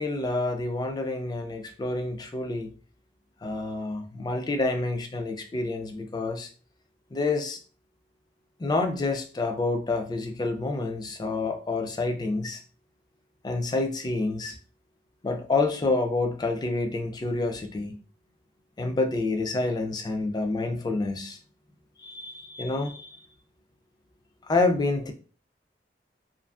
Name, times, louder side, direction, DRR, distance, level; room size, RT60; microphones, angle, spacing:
voice 1, 0.0-2.7 3.4-6.5 7.1-7.6 8.6-12.6 13.4-14.6 15.2-18.0 18.8-21.4 22.0-23.2 24.5-25.1, left 3 dB, 25° left, 5 dB, 0.3 m, -28 dB
2.7 x 2.5 x 2.3 m, 0.39 s
head